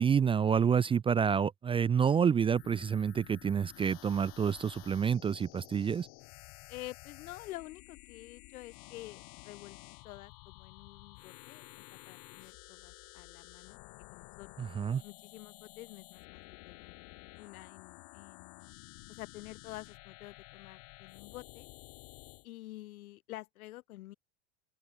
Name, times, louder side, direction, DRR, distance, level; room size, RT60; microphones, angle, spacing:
voice 1, 0.0-6.1 14.6-15.0, right 7 dB, 15° right, 0.6 m, -28 dB
sound 1, 2.5-22.5, left 31 dB, 50° left, 4.5 m, -53 dB
voice 2, 6.7-13.8 14.1-14.6 15.0-17.0 17.4-18.7 19.1-21.7 22.4-24.1, left 17 dB, 80° left, 6.3 m, -49 dB
open air
supercardioid pair, 155°, 42 cm